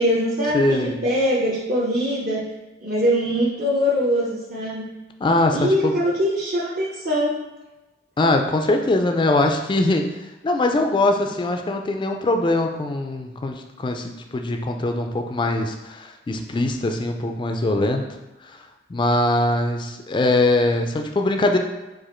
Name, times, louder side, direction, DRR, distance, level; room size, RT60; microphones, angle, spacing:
voice 1, 0.0-2.5 2.8-4.9 5.5-7.4, equal, 50° right, -5 dB, 0.7 m, -22 dB
voice 2, 0.5-1.0 5.2-6.0 8.2-18.0 18.4-18.6 18.9-21.6, left 2 dB, 25° left, 4 dB, 0.3 m, -22 dB
4.8 x 2.5 x 4.3 m, 1.1 s
head